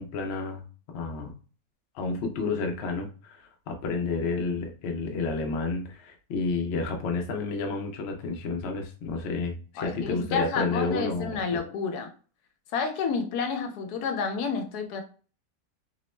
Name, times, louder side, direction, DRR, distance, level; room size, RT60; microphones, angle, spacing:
voice 1, 0.0-1.3 1.9-11.4, left 3 dB, 65° left, 0.6 m, -30 dB
voice 2, 9.8-12.1 12.7-15.0, left 5 dB, 80° left, 1.1 m, -30 dB
2.9 x 2.0 x 3.1 m
omnidirectional pair, 1.6 m